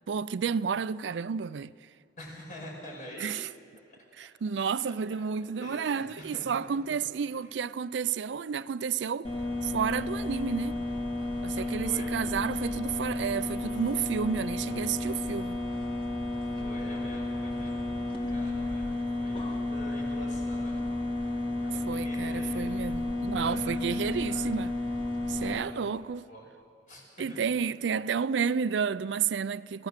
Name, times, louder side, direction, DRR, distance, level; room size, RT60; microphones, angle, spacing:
voice 1, 0.1-1.7 3.2-3.5 4.1-9.3 9.6-10.8 11.4-15.6 21.7-24.8 25.3-26.3 27.2-29.9, right 6 dB, 80° right, 0.4 m, -31 dB
voice 2, 2.2-3.4 4.9-5.0 5.6-6.5 11.2-12.1 16.4-17.8 18.3-20.9 21.3-22.9 23.3-24.5 25.5-26.0 26.3-26.4 26.9-27.0 27.3-27.4, left 1 dB, 50° left, 5.6 m, -46 dB
sound 1, 9.2-25.5, left 2 dB, 30° left, 2.3 m, -32 dB
25.5 x 16.0 x 6.6 m
head